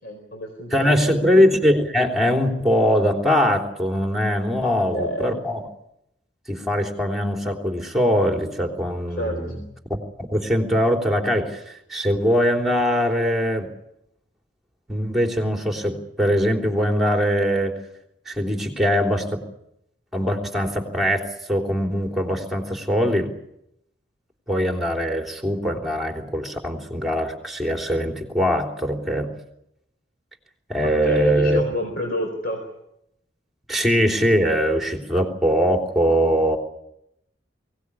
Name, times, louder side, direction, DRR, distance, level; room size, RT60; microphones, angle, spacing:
voice 1, 0.0-1.3 4.6-5.4 9.2-9.4 31.0-32.6, left 1 dB, 55° left, 3 dB, 4.5 m, -29 dB
voice 2, 0.7-5.6 6.5-9.6 9.9-13.7 14.9-17.7 18.2-19.4 20.1-23.3 24.5-29.3 30.7-31.6 33.7-36.6, equal, ahead, 3 dB, 3.3 m, -22 dB
23.5 x 18.0 x 9.9 m, 0.82 s
head